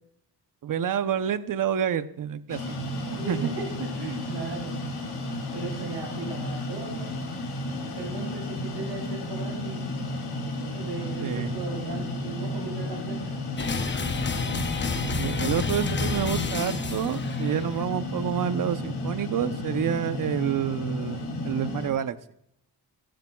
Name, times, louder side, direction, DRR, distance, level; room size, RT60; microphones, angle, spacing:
voice 1, 0.6-3.5 11.2-11.6 15.2-22.2, right 9 dB, 55° right, 12 dB, 0.8 m, -28 dB
sound 1, 2.5-21.9, left 1 dB, 80° left, 3.9 m, -33 dB
voice 2, 3.0-4.7 5.5-7.2 7.8-9.9 10.6-13.2, right 3 dB, 80° right, -2 dB, 2.8 m, -36 dB
sound 2, 13.6-17.7, left 5 dB, 30° left, 0.8 m, -30 dB
15.0 x 11.5 x 2.3 m, 0.76 s
wide cardioid pair, 125°, 39 cm